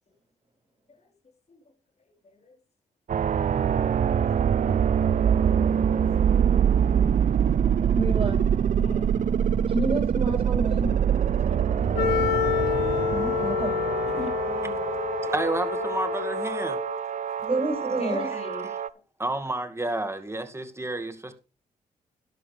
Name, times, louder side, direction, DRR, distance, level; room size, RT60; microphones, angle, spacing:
sound 1, 3.1-18.9, right 8 dB, 55° right, 0.6 m, -24 dB
voice 1, 7.9-8.4 9.7-10.9 13.1-13.8 17.4-18.2, right 2 dB, 35° right, 6.4 m, -29 dB
voice 2, 8.8-9.1 11.3-12.1 14.1-14.8 17.7-18.7, left 3 dB, 45° left, 4.3 m, -38 dB
Wind instrument woodwind instrument, 11.9-17.0, left 12 dB, 85° left, 1.5 m, -28 dB
voice 3, 15.2-16.8 18.3-18.4 18.7-18.8 19.2-21.3, right 2 dB, 15° right, 2.2 m, -30 dB
11.5 x 11.5 x 3.4 m
supercardioid pair, 50°, 16 cm